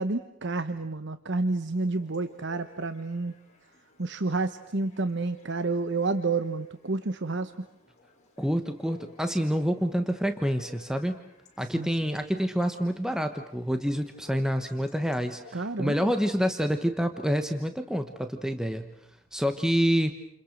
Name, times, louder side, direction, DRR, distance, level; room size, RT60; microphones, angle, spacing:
voice 1, 0.0-3.3 4.0-7.5 11.7-11.9 15.5-16.1, right 3 dB, 60° right, 11 dB, 1.1 m, -29 dB
Chatter / Bark / Livestock farm animals working animals, 1.9-15.5, left 2 dB, 35° left, 6.3 m, -55 dB
voice 2, 8.4-11.2 11.6-18.9 19.3-20.1, equal, 5° right, 7 dB, 1.1 m, -27 dB
29.5 x 28.5 x 6.5 m, 0.76 s
head